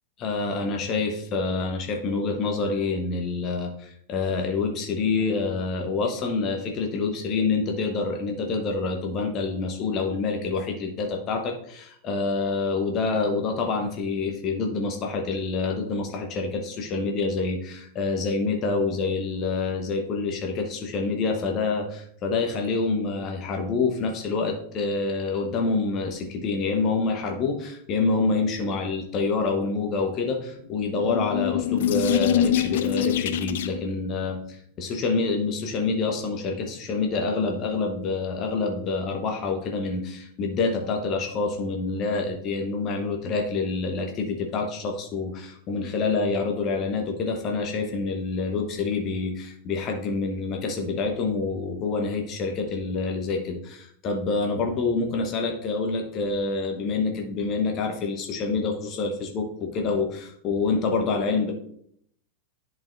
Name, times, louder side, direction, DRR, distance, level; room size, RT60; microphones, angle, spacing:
voice 1, 0.2-61.5, left 4 dB, 35° left, 3 dB, 0.9 m, -27 dB
sound 1, 30.7-34.0, left 11 dB, 55° left, 0.4 m, -25 dB
10.5 x 4.3 x 2.5 m, 0.66 s
figure-of-eight pair, 90°, 0 cm